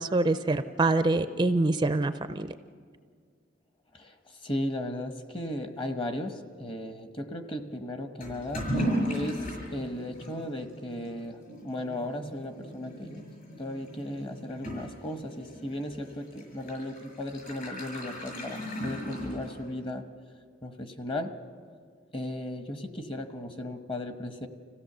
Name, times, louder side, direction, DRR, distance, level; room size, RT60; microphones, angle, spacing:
voice 1, 0.0-2.5, right 2 dB, 25° right, 10 dB, 0.5 m, -25 dB
voice 2, 3.9-13.2 13.6-20.1 20.6-21.4 22.1-24.5, left 1 dB, 30° left, 7 dB, 1.1 m, -36 dB
Toilet flush / Liquid, 8.2-19.8, equal, 50° left, 7.1 m, -37 dB
26.0 x 16.0 x 6.8 m, 2.1 s
head